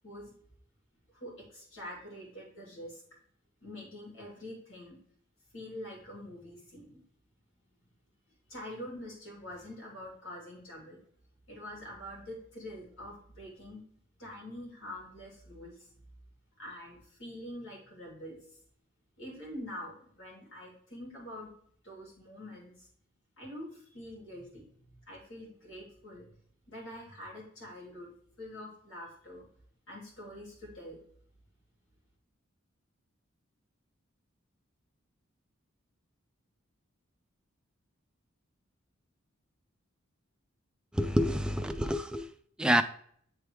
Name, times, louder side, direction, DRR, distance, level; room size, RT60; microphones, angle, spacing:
voice 1, 1.1-3.0 3.6-5.0 5.5-7.0 8.5-11.0 11.5-13.8 14.2-15.9 16.6-18.6 19.2-21.6 21.8-22.9 23.4-24.6 25.1-26.3 26.7-28.1 28.4-29.5 29.9-31.0, left 1 dB, 85° left, 2.7 m, -45 dB
voice 2, 40.9-42.3 42.6-42.8, equal, 5° right, 0.3 m, -27 dB
9.6 x 3.5 x 3.1 m
head